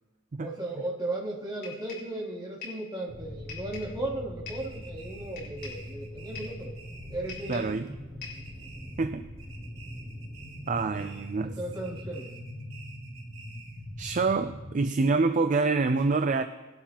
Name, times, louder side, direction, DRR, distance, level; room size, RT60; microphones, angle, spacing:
voice 1, 0.4-6.7 7.1-7.8 10.9-11.1 11.6-12.3, right 2 dB, 25° right, -7 dB, 2.9 m, -36 dB
sound 1, 1.6-2.1 2.6-2.9 3.5-4.0 4.5-4.7 5.4-5.9 6.3-6.6 7.3-7.8 8.2-8.5, left 5 dB, 50° left, 4.3 m, -43 dB
sound 2, 3.1-14.8, equal, 5° left, 2.7 m, -42 dB
sound 3, 4.6-7.9 8.2-9.1 9.4-11.4 11.7-13.9, right 4 dB, 85° right, 3.4 m, -51 dB
voice 2, 7.5-7.9 9.0-9.3 10.7-11.6 14.0-16.4, right 3 dB, 40° right, 9 dB, 0.4 m, -26 dB
20.0 x 12.0 x 2.9 m, 1.1 s
head